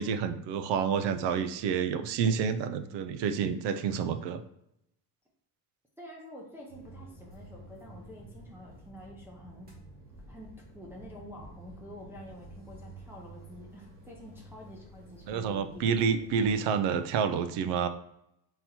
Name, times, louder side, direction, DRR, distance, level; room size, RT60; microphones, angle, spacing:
voice 1, 0.0-4.4 15.3-17.9, right 6 dB, 85° right, 11 dB, 0.5 m, -29 dB
voice 2, 6.0-9.7 10.3-15.9, equal, 5° right, -4 dB, 0.5 m, -48 dB
sound 1, 6.7-16.5, right 1 dB, 20° right, 1.1 m, -50 dB
3.9 x 2.8 x 4.2 m, 0.79 s
cardioid pair, 170°, 41 cm